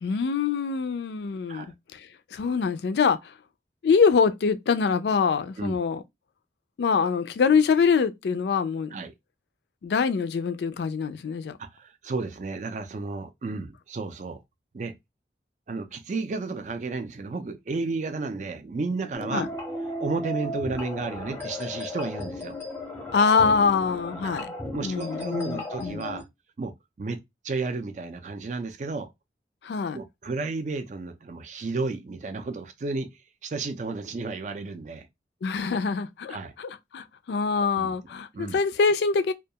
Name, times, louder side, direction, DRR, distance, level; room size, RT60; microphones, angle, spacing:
voice 1, 0.0-1.7 1.9-2.0 2.3-3.2 3.8-6.0 6.8-9.0 9.8-11.6 19.3-19.5 23.1-24.5 24.8-26.0 29.6-30.0 35.4-39.3, left 5 dB, 75° left, 0.3 m, -24 dB
voice 2, 11.6-14.4 14.7-14.9 15.7-19.4 20.0-22.6 24.3-24.4 24.7-26.3 26.6-29.1 29.9-35.1 36.3-36.5 37.8-38.0 38.3-38.6, right 3 dB, 40° right, 0.4 m, -32 dB
sound 1, 19.1-26.2, left 1 dB, 15° left, 0.6 m, -35 dB
2.3 x 2.2 x 2.7 m
head